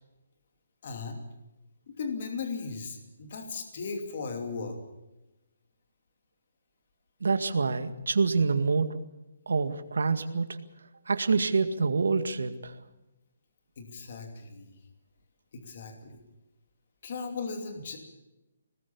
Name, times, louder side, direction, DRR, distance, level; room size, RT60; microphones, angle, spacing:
voice 1, 0.8-1.2 1.9-4.8 13.8-14.8 15.5-16.2 17.0-18.0, left 4 dB, 35° left, 5 dB, 2.7 m, -37 dB
voice 2, 7.2-9.0 9.5-10.6 11.1-12.7, right 4 dB, 90° right, 9 dB, 2.0 m, -26 dB
21.5 x 19.5 x 7.1 m, 0.98 s
hypercardioid pair, 180°, 0 cm